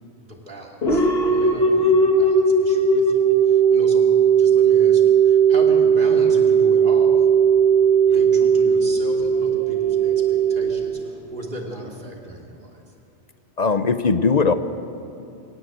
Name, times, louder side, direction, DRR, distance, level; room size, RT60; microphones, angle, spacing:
voice 1, 0.3-7.3 8.0-12.8, right 1 dB, 50° right, -1 dB, 3.2 m, -36 dB
sound 1, 0.8-11.5, right 6 dB, 60° left, 2.0 m, -17 dB
voice 2, 13.6-14.5, left 4 dB, 40° left, 11 dB, 0.8 m, -19 dB
23.0 x 18.0 x 7.9 m, 2.7 s
omnidirectional pair, 1.2 m